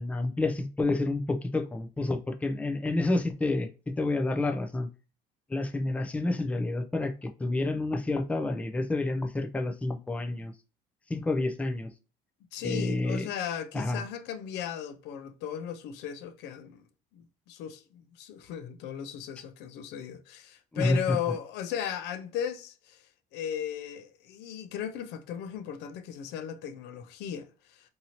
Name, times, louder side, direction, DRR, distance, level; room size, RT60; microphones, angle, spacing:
voice 1, 0.0-3.7 4.0-4.9 5.5-10.5 11.1-11.9 12.6-13.3 13.7-14.0 20.7-21.2, left 2 dB, 10° left, 0.4 m, -29 dB
voice 2, 12.5-16.8 17.1-23.0 23.3-27.9, left 9 dB, 90° left, 0.4 m, -36 dB
2.7 x 2.7 x 2.8 m
cardioid pair, 110°, 17 cm